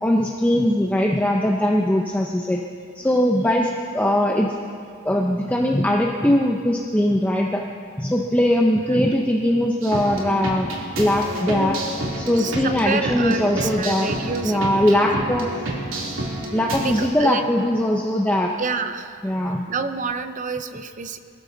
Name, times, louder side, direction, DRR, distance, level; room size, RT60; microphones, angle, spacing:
voice 1, 0.0-2.6 2.9-4.5 5.0-7.6 8.0-10.7 11.0-11.8 12.1-14.1 14.4-15.5 16.5-18.5 19.2-19.7, left 1 dB, 5° left, -1 dB, 0.7 m, -20 dB
sound 1, 9.8-17.1, right 1 dB, 65° right, 2.8 m, -29 dB
sound 2, 11.4-17.9, equal, 40° left, 1.1 m, -41 dB
voice 2, 12.3-14.8 16.7-17.4 18.6-19.2 19.7-21.2, right 4 dB, 35° right, 9 dB, 0.6 m, -28 dB
22.0 x 14.5 x 4.0 m, 2.2 s
head